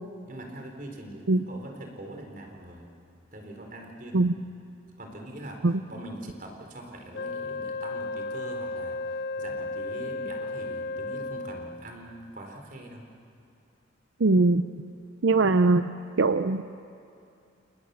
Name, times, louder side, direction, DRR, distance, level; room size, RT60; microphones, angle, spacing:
voice 1, 0.3-2.9 3.3-4.3 5.0-5.6 5.9-13.0 15.5-15.6, right 1 dB, 45° right, 2 dB, 4.4 m, -42 dB
Wind instrument woodwind instrument, 7.1-11.9, left 3 dB, 55° left, 0.9 m, -34 dB
voice 2, 14.2-14.6 15.2-15.9 16.2-16.6, right 3 dB, 80° right, 10 dB, 0.7 m, -21 dB
29.5 x 28.5 x 7.1 m, 2.6 s
head